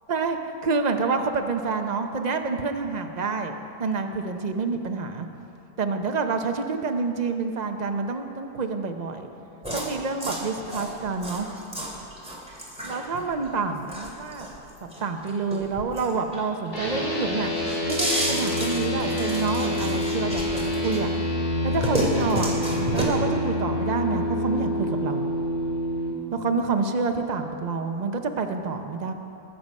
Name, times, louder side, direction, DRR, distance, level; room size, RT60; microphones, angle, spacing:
voice 1, 0.6-5.3 5.8-9.3 9.7-11.5 12.8-14.6 15.0-17.5 17.8-21.1 21.6-22.5 22.9-25.3 26.3-29.1, right 4 dB, 45° right, 5 dB, 0.5 m, -28 dB
sound 1, 9.6-16.7 17.1-21.2 21.5-23.0, equal, 5° right, 2.4 m, -32 dB
sound 2, 16.7-26.1, left 1 dB, 30° left, 2.7 m, -27 dB
21.0 x 7.6 x 5.3 m, 2.8 s
omnidirectional pair, 1.7 m